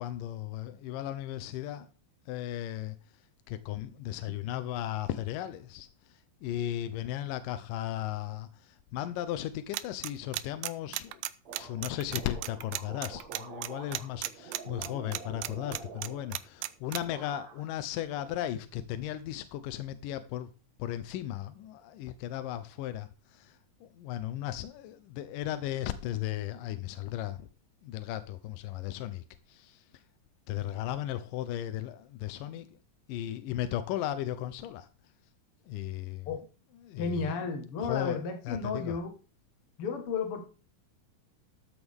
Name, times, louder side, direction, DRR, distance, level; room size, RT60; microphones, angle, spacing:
voice 1, 0.0-1.9 2.3-3.0 3.5-5.9 6.4-11.2 11.6-20.5 20.8-23.5 23.8-27.5 27.8-29.8 30.5-32.7 33.1-34.9 35.7-36.3 36.9-37.3 37.8-38.2 38.5-38.9, left 12 dB, 75° left, 2.1 m, -36 dB
sound 1, 9.7-17.0, right 17 dB, 80° right, 2.1 m, -34 dB
sound 2, 11.4-16.7 17.0-17.8 18.1-19.0, right 5 dB, 55° right, 2.5 m, -47 dB
voice 2, 37.0-39.1 39.8-40.4, left 4 dB, 50° left, 1.9 m, -33 dB
13.0 x 8.0 x 3.6 m
omnidirectional pair, 4.3 m